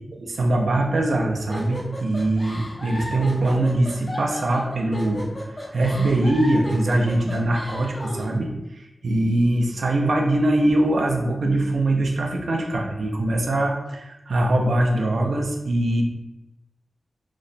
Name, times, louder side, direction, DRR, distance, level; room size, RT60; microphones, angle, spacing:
voice 1, 0.1-16.0, right 1 dB, 85° right, 1 dB, 0.5 m, -22 dB
sound 1, 1.5-8.3, left 1 dB, 40° left, 0.9 m, -34 dB
3.0 x 2.2 x 3.9 m, 0.96 s
wide cardioid pair, 80°, 0 cm